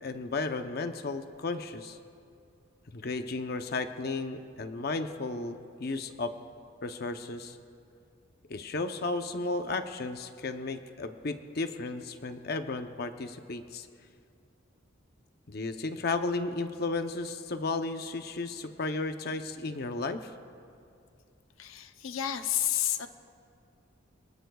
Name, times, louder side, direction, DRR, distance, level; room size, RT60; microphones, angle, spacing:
voice 1, 0.0-2.0 2.9-6.3 6.8-7.6 8.5-13.9 15.5-20.3, left 3 dB, 50° left, 7 dB, 0.7 m, -34 dB
voice 2, 21.6-23.1, left 11 dB, 90° left, 8 dB, 0.7 m, -30 dB
27.0 x 19.5 x 2.3 m, 2.4 s
head